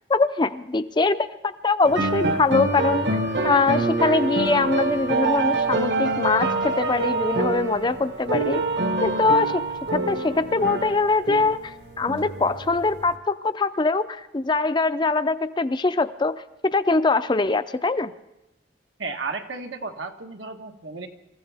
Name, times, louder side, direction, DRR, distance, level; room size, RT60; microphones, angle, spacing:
voice 1, 0.1-3.1 3.4-8.6 9.0-9.6 9.9-18.1, left 3 dB, 25° left, 12 dB, 0.5 m, -23 dB
sound 1, 1.8-13.1, right 3 dB, 65° right, 1.3 m, -26 dB
voice 2, 19.0-21.1, right 4 dB, 85° right, 4 dB, 1.4 m, -33 dB
26.5 x 15.0 x 3.5 m, 0.90 s
head